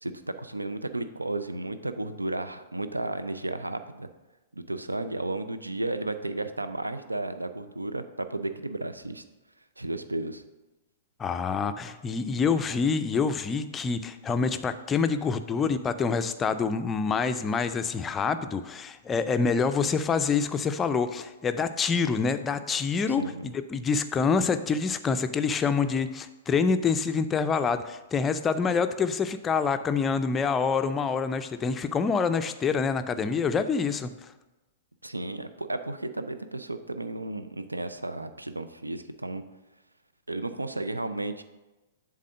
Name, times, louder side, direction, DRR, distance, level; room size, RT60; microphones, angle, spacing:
voice 1, 0.0-4.1 4.5-9.2 9.8-10.4 23.1-23.5 35.0-39.4 40.3-41.4, right 2 dB, 85° right, 10 dB, 0.4 m, -33 dB
voice 2, 11.2-34.3, left 5 dB, 15° left, 9 dB, 0.4 m, -26 dB
7.5 x 3.6 x 6.3 m, 1.1 s
figure-of-eight pair, 105°, 0 cm